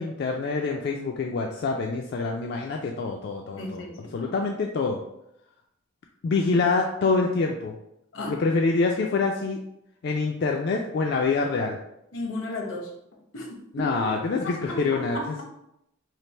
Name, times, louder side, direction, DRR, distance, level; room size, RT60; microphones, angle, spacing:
voice 1, 0.0-3.8 4.1-5.0 6.2-7.8 8.3-9.6 10.0-11.8 13.7-15.4, left 4 dB, 55° left, 1 dB, 0.3 m, -26 dB
voice 2, 3.6-4.4 8.1-8.4 12.1-12.9 13.3-13.9 14.7-15.4, left 2 dB, 80° left, 1 dB, 0.8 m, -34 dB
3.2 x 2.4 x 4.2 m, 0.82 s
head